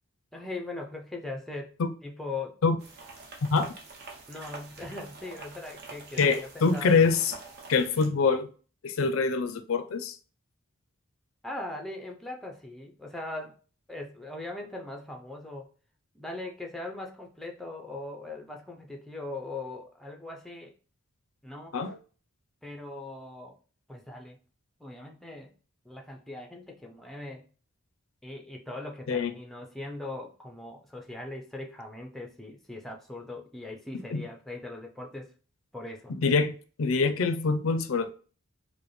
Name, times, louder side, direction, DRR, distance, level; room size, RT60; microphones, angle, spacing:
voice 1, 0.3-1.8 2.0-2.6 4.3-7.0 11.4-13.6 13.9-15.7 16.1-20.7 21.4-21.9 22.6-23.6 23.9-24.4 24.8-25.5 25.8-27.5 28.2-35.3 35.7-36.1, left 2 dB, ahead, 0.5 m, -40 dB
sound 1, 2.8-8.1, right 3 dB, 50° right, 0.8 m, -46 dB
voice 2, 3.4-3.7 6.2-7.3 7.7-8.5 8.8-10.2 21.7-22.0 29.1-29.3 34.1-34.2 36.1-36.5 36.8-38.1, left 4 dB, 80° left, 0.5 m, -25 dB
5.0 x 2.1 x 3.1 m
head